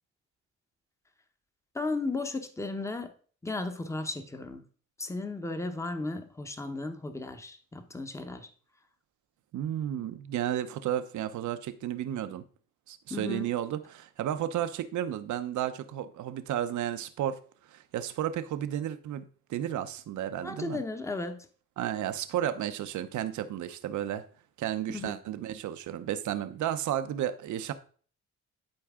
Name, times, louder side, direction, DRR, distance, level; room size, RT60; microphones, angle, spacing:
voice 1, 1.7-3.1 3.4-4.6 5.0-8.5 13.1-13.5 20.4-21.4 24.9-25.1, left 2 dB, 10° left, 1.0 m, -35 dB
voice 2, 9.5-12.4 12.9-17.4 17.7-20.8 21.8-24.2 24.6-27.7, right 11 dB, 75° right, 0.9 m, -33 dB
11.5 x 4.7 x 3.7 m
cardioid pair, 90°, 30 cm